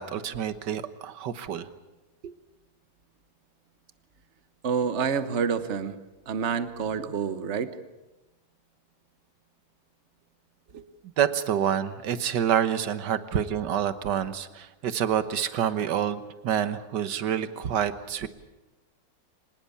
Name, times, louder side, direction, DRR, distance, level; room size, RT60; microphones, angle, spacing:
voice 1, 0.0-1.7 2.2-2.3 11.2-18.3, right 9 dB, 65° right, 12 dB, 1.7 m, -27 dB
voice 2, 4.6-6.0 6.3-7.8 10.7-10.8, right 6 dB, 40° right, 12 dB, 1.3 m, -28 dB
24.5 x 20.0 x 8.6 m, 1.0 s
omnidirectional pair, 2.1 m